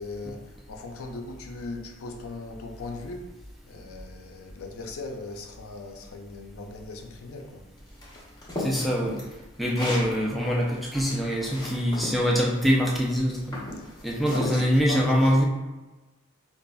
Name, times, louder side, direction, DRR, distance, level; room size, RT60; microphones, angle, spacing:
voice 1, 0.0-3.3 3.6-7.6 13.8-13.9 14.3-15.5, left 3 dB, 85° left, 3 dB, 0.5 m, -39 dB
sound 1, 8.0-10.1 10.7-12.2 12.9-13.1 13.5-14.6, left 1 dB, 20° left, 0.8 m, -34 dB
voice 2, 8.6-9.2 9.6-13.6 14.0-15.4, equal, ahead, -4 dB, 0.5 m, -24 dB
5.2 x 2.5 x 2.3 m, 1.1 s
head